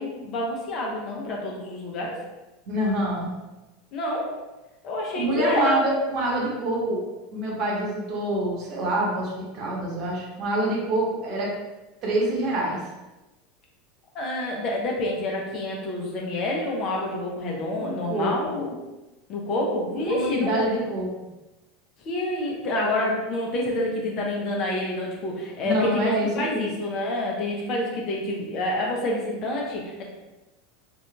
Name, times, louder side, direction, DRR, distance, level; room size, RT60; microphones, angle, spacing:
voice 1, 0.0-2.2 3.9-4.4 4.8-5.8 14.1-18.8 19.3-20.6 22.0-30.0, left 1 dB, 45° left, -1 dB, 0.8 m, -28 dB
voice 2, 2.7-3.3 5.1-7.0 7.3-11.5 12.0-12.8 17.8-18.5 20.0-21.1 25.6-26.7, right 1 dB, 45° right, -3 dB, 1.0 m, -26 dB
4.0 x 2.5 x 2.3 m, 1.1 s
figure-of-eight pair, 80°, 0 cm